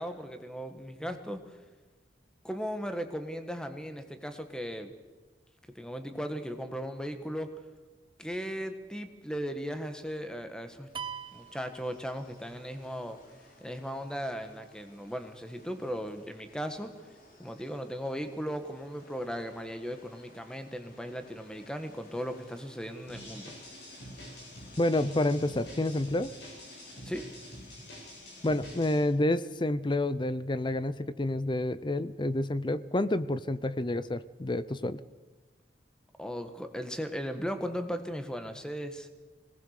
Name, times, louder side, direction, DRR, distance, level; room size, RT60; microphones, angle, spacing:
voice 1, 0.0-1.6 2.4-4.9 5.7-7.5 8.2-10.9 11.3-13.2 13.6-16.9 17.4-23.5 27.0-27.2 36.2-39.1, equal, 5° left, 8 dB, 1.5 m, -37 dB
sound 1, 10.9-29.0, left 2 dB, 50° left, 3.5 m, -58 dB
sound 2, 10.9-12.6, right 7 dB, 30° right, 0.7 m, -42 dB
sound 3, 23.1-29.0, left 1 dB, 65° left, 8.0 m, -46 dB
voice 2, 24.8-26.3 28.4-35.0, left 1 dB, 25° left, 15 dB, 0.6 m, -29 dB
22.0 x 18.5 x 6.7 m, 1.2 s
head